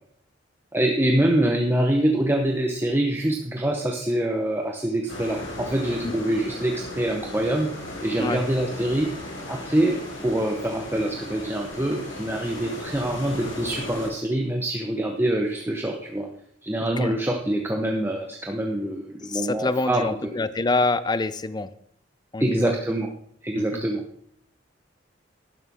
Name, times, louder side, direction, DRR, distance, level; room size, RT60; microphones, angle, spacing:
voice 1, 0.7-7.7 8.0-9.1 9.5-16.3 16.6-20.3 22.4-23.1 23.4-24.0, right 1 dB, 10° right, 2 dB, 0.9 m, -25 dB
sound 1, 5.1-14.1, left 1 dB, 80° left, 5.5 m, -37 dB
voice 2, 16.8-17.1 19.3-21.7 22.3-22.7 23.5-23.8, left 3 dB, 20° left, 14 dB, 0.5 m, -26 dB
12.0 x 11.0 x 3.6 m, 0.68 s
head